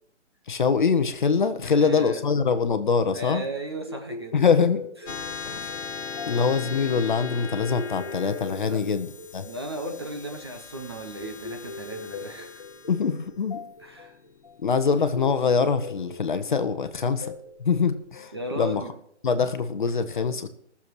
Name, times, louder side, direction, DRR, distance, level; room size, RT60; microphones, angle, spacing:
voice 1, 0.5-3.5 4.3-4.9 5.5-5.7 6.3-9.5 12.9-13.6 14.6-17.3 17.6-18.8 19.2-20.5, left 5 dB, 45° left, 1.0 m, -24 dB
voice 2, 1.6-2.2 3.1-4.4 5.2-5.3 5.9-6.3 8.6-8.9 9.4-12.6 13.8-14.2 18.3-18.9, right 1 dB, 20° right, 0.7 m, -36 dB
sound 1, 3.9-18.6, left 3 dB, 25° left, 0.6 m, -42 dB
sound 2, 5.1-15.9, left 6 dB, 85° left, 1.4 m, -39 dB
15.5 x 7.1 x 6.2 m
hypercardioid pair, 170°, 35 cm